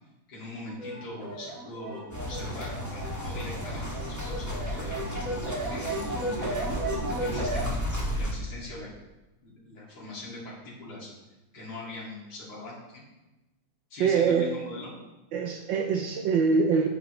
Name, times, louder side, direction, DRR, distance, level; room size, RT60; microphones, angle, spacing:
voice 1, 0.3-5.0 5.7-6.8 7.2-8.9 9.4-11.1 11.5-13.0 13.9-14.9, left 2 dB, 55° left, -6 dB, 3.0 m, -42 dB
sound 1, 0.7-7.6, right 2 dB, 45° right, 2.3 m, -35 dB
sound 2, 2.1-8.3, left 1 dB, 10° left, 1.5 m, -34 dB
voice 2, 14.0-14.5 15.3-16.9, right 5 dB, 75° right, 4 dB, 1.3 m, -24 dB
10.0 x 8.5 x 3.2 m, 1.0 s
omnidirectional pair, 2.2 m